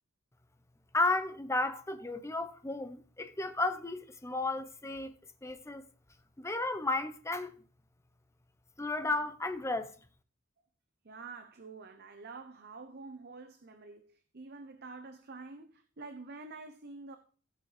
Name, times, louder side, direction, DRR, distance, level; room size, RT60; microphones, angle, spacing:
voice 1, 0.9-5.1 5.4-5.8 6.4-7.6 8.8-9.9, left 2 dB, 15° left, 0.8 m, -33 dB
voice 2, 11.0-17.2, right 3 dB, 50° right, 0.7 m, -47 dB
16.0 x 7.0 x 3.3 m
head